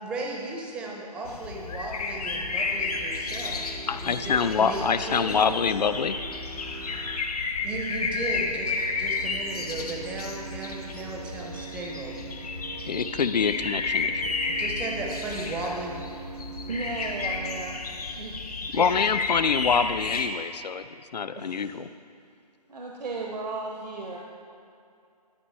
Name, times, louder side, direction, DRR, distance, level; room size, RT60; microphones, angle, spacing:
voice 1, 0.0-3.6 4.0-5.4 7.6-12.1 14.5-16.0, right 2 dB, 5° right, -1 dB, 0.5 m, -35 dB
sound 1, 1.3-20.3, left 4 dB, 65° left, 1.1 m, -32 dB
sound 2, 2.1-7.4 8.1-17.9 18.7-20.1, right 7 dB, 55° right, 0.5 m, -44 dB
voice 2, 3.9-6.2 12.9-14.3 18.7-21.9, left 6 dB, 85° left, 13 dB, 0.5 m, -25 dB
voice 3, 16.7-17.8 18.1-18.4 18.7-18.9 21.3-21.7 22.7-24.2, right 3 dB, 80° right, 0 dB, 1.0 m, -35 dB
11.5 x 5.4 x 5.4 m, 2.5 s
figure-of-eight pair, 150°, 21 cm